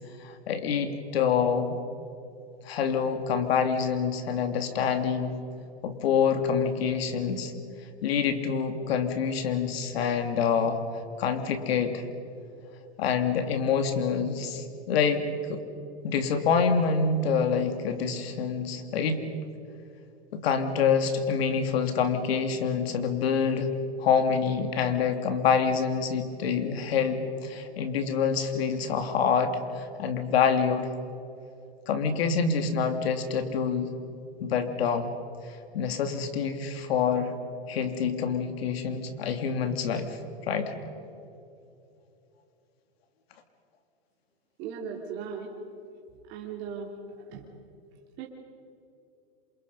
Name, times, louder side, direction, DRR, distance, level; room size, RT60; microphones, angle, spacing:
voice 1, 0.2-1.8 2.6-5.3 5.8-7.5 8.0-10.8 11.2-12.0 13.0-15.2 15.5-15.6 16.0-19.2 20.3-23.7 24.0-30.9 31.9-33.9 34.4-35.1 35.7-37.3 37.7-40.2 40.5-40.7, left 6 dB, 70° left, 7 dB, 2.8 m, -26 dB
voice 2, 44.6-45.5 46.3-46.9 47.3-47.4 48.2-48.3, right 7 dB, 35° right, -1 dB, 3.0 m, -37 dB
29.0 x 27.0 x 5.5 m, 2.8 s
supercardioid pair, 155°, 31 cm